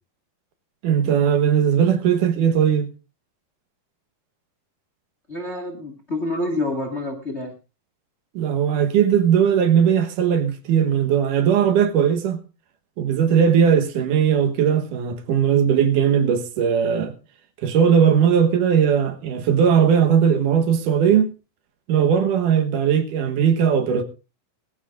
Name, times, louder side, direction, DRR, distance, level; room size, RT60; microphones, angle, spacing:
voice 1, 0.8-2.9 8.3-12.4 13.0-17.1 17.6-21.3 21.9-24.0, right 8 dB, 70° right, 2.7 m, -18 dB
voice 2, 5.3-7.5, left 2 dB, 30° left, 1.4 m, -27 dB
20.0 x 14.5 x 2.5 m
omnidirectional pair, 3.9 m